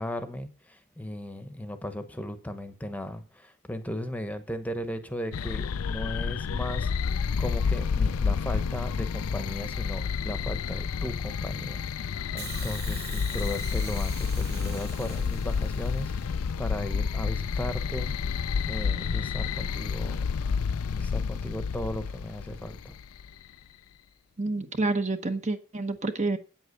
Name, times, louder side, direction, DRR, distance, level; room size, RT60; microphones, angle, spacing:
voice 1, 0.0-18.4 18.7-20.2 21.0-22.9, left 1 dB, 5° left, 1.0 m, -37 dB
sound 1, 5.3-23.3, left 6 dB, 85° left, 0.4 m, -30 dB
Hiss, 12.4-16.5 17.5-17.6, right 9 dB, 50° right, 1.1 m, -45 dB
voice 2, 24.4-26.4, right 3 dB, 35° right, 0.9 m, -28 dB
9.0 x 8.0 x 6.6 m
head